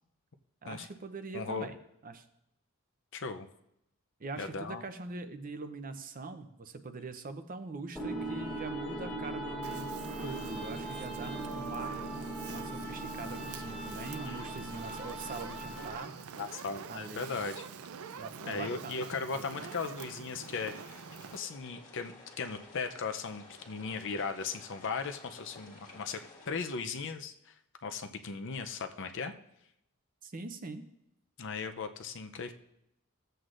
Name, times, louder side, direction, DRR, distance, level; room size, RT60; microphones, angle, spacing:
voice 1, 0.6-1.8 2.0-2.2 4.2-10.0 10.2-16.2 16.9-17.3 18.2-19.7 30.2-30.8, right 3 dB, 40° right, 9 dB, 0.6 m, -43 dB
voice 2, 1.3-1.7 3.1-3.5 4.4-4.8 14.2-14.6 16.4-17.6 18.5-21.0 21.3-26.2 26.5-27.5 27.8-29.3 31.4-32.5, left 4 dB, 60° left, 7 dB, 0.6 m, -37 dB
sound 1, 8.0-16.1, right 2 dB, 5° left, 1.6 m, -39 dB
Fire, 9.6-21.4, right 6 dB, 85° right, 0.5 m, -46 dB
sound 2, 20.4-26.5, left 3 dB, 35° left, 1.8 m, -54 dB
15.0 x 7.8 x 2.5 m, 0.81 s
head